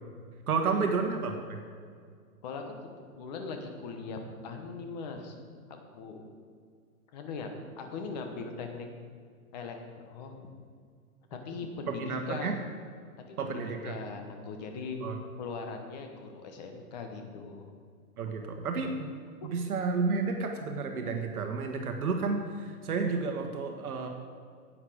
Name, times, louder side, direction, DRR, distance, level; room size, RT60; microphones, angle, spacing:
voice 1, 0.5-1.6 11.9-12.6 13.4-13.9 15.0-15.2 18.2-19.1 19.4-24.1, right 4 dB, 75° right, 4 dB, 1.4 m, -31 dB
voice 2, 2.4-5.4 5.7-6.3 7.1-7.5 7.8-8.9 9.5-10.5 11.3-12.6 13.3-15.0 15.4-17.7 19.4-19.5, left 4 dB, 30° left, 4 dB, 1.1 m, -40 dB
10.5 x 8.6 x 5.0 m, 2.1 s
hypercardioid pair, 160°, 45 cm